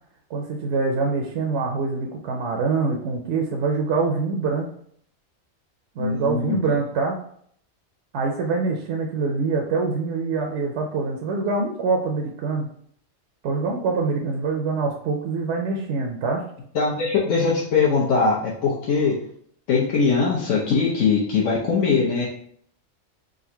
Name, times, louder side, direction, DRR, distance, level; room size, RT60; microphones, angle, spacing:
voice 1, 0.3-4.7 6.0-7.2 8.1-12.7 13.4-16.4, right 4 dB, 65° right, 2 dB, 0.8 m, -25 dB
voice 2, 6.0-6.6 16.7-19.1 19.7-22.3, left 5 dB, 70° left, -5 dB, 1.1 m, -21 dB
3.8 x 2.5 x 4.2 m, 0.64 s
omnidirectional pair, 1.3 m